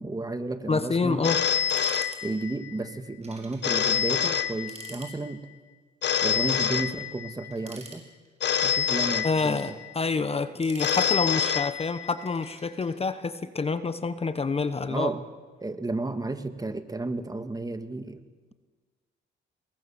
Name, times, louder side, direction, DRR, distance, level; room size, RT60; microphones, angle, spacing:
voice 1, 0.0-1.3 2.2-5.5 6.2-8.0 8.6-9.6 14.9-15.2 15.6-18.2, right 2 dB, 20° right, 9 dB, 2.0 m, -32 dB
voice 2, 0.7-1.4 9.2-15.1, left 4 dB, 30° left, 12 dB, 1.2 m, -27 dB
Telephone, 1.2-2.7 3.6-5.1 6.0-7.5 8.4-9.9 10.8-12.3, left 8 dB, 60° left, 1.4 m, -27 dB
sound 1, 1.6-2.2 2.5-2.6 3.2-3.7 4.0-4.1 4.5-5.1 6.1-6.6 7.5-8.4 9.0-9.7 10.4-11.5 12.3-12.9, right 3 dB, 35° right, 5.9 m, -47 dB
27.0 x 21.5 x 7.3 m, 1.4 s
cardioid pair, 90°, 20 cm